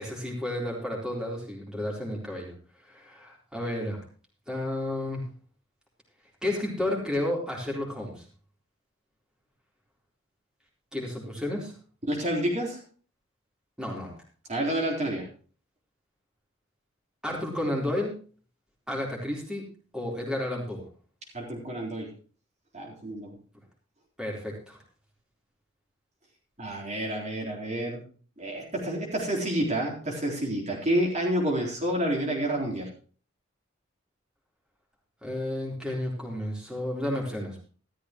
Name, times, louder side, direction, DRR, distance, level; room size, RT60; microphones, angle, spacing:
voice 1, 0.0-2.5 2.9-4.0 4.5-5.2 6.4-8.2 10.9-11.7 13.8-14.1 17.2-18.1 18.9-19.6 19.9-20.8 24.2-24.8 35.2-37.6, left 1 dB, 5° right, -3 dB, 3.9 m, -31 dB
voice 2, 12.1-12.8 14.5-15.3 21.3-22.1 22.7-23.3 26.6-28.0 28.4-32.9, right 1 dB, 35° right, -2 dB, 4.0 m, -29 dB
14.0 x 13.5 x 3.1 m, 0.41 s
head